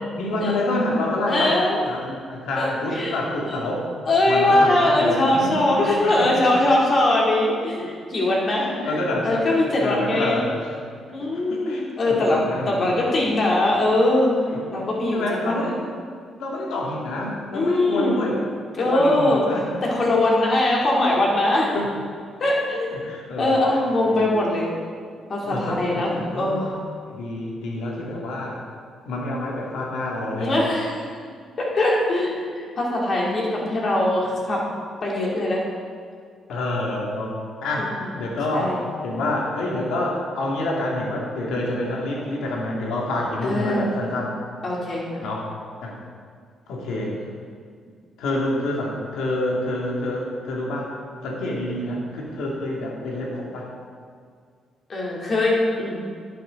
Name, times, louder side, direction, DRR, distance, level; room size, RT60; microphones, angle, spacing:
voice 1, 0.1-1.6 1.8-3.9 4.2-5.5 5.8-6.3 8.5-10.7 11.5-13.1 14.5-16.0 16.4-18.5 18.8-19.8 21.7-21.9 22.9-23.8 24.1-24.3 25.4-26.6 27.1-28.6 29.1-30.5 36.5-44.3 45.2-45.5 45.8-46.0 46.7-47.1 48.2-50.9 51.2-53.7, left 1 dB, 85° left, -2 dB, 2.4 m, -27 dB
voice 2, 1.3-1.8 2.6-3.2 4.1-8.9 9.2-10.5 11.1-14.4 14.7-15.7 17.5-18.2 18.7-19.4 19.8-21.7 22.4-22.9 23.4-24.7 25.3-26.8 30.4-31.1 31.6-34.6 35.0-35.6 37.8-37.9 38.5-38.8 43.4-43.9 44.6-45.2 54.9-56.0, left 1 dB, 45° left, -3 dB, 2.9 m, -21 dB
11.0 x 9.3 x 3.9 m, 2.1 s
cardioid pair, 90°, 0 cm